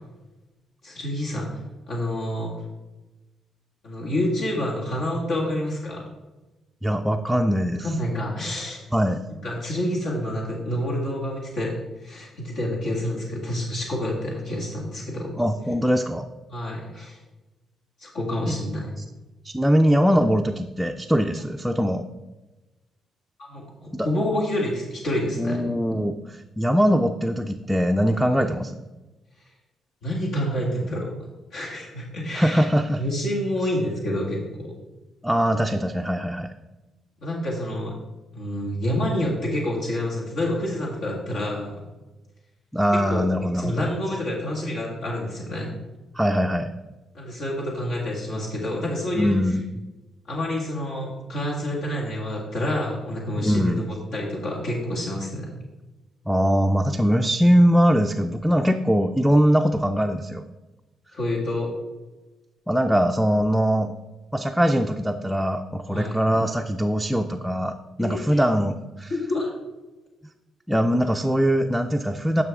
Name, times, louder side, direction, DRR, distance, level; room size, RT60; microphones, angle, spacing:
voice 1, 0.8-1.5 1.9-2.5 3.8-6.1 7.8-8.8 9.4-11.7 12.0-15.3 16.5-17.2 18.0-18.9 23.4-23.6 24.0-25.6 28.3-28.4 30.0-31.1 31.5-32.7 33.0-34.7 37.2-38.0 38.3-41.8 43.1-43.2 43.6-45.7 47.1-49.4 50.3-55.5 61.1-61.7 65.9-66.1 68.0-68.4 69.1-69.5, left 1 dB, 75° left, -4 dB, 1.9 m, -28 dB
voice 2, 6.8-7.9 8.9-9.2 15.4-16.3 18.5-18.6 19.4-22.1 23.9-24.1 25.4-28.8 32.3-33.0 35.2-36.5 42.7-43.9 46.1-46.7 49.2-49.6 53.4-53.9 56.3-60.4 62.7-63.9 64.3-69.1 70.7-72.4, equal, 5° right, 3 dB, 0.4 m, -22 dB
11.0 x 5.9 x 3.6 m, 1.1 s
cardioid pair, 90°, 0 cm